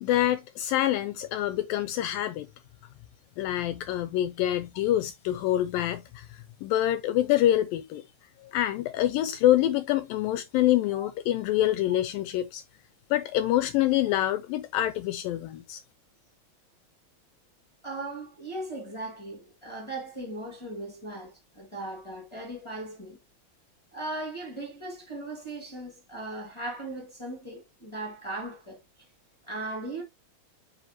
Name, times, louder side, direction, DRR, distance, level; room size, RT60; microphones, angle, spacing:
voice 1, 0.0-2.5 3.4-8.0 8.4-12.6 13.1-15.8, left 13 dB, 85° left, 2.1 m, -26 dB
voice 2, 17.8-23.2 23.9-28.8 29.4-30.0, right 2 dB, 25° left, 0.6 m, -38 dB
8.7 x 4.7 x 2.9 m
omnidirectional pair, 4.5 m